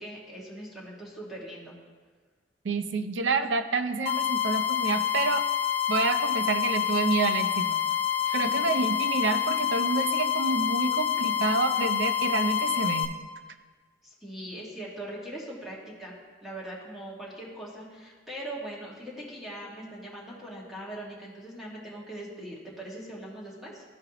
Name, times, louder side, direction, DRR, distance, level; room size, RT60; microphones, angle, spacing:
voice 1, 0.0-1.7 8.2-8.5 14.0-16.1 16.4-23.8, right 1 dB, ahead, -6 dB, 1.7 m, -41 dB
voice 2, 2.6-5.5 5.9-7.8 8.3-13.1, right 4 dB, 70° right, 9 dB, 0.5 m, -28 dB
sound 1, 4.1-13.1, left 9 dB, 60° left, 0.8 m, -27 dB
13.5 x 4.8 x 2.9 m, 1.4 s
head